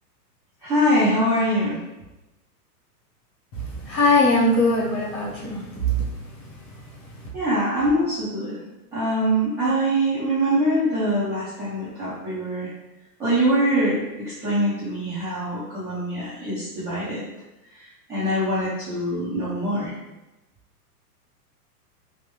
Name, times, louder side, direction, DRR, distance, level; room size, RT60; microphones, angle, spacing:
voice 1, 0.6-1.8 7.3-8.6 8.9-12.7 13.2-14.0 14.2-17.2 18.1-19.9, equal, 5° right, -14 dB, 0.4 m, -23 dB
voice 2, 3.5-6.1, left 1 dB, 25° left, -5 dB, 0.9 m, -21 dB
3.4 x 3.0 x 3.0 m, 0.99 s
hypercardioid pair, 145°, 48 cm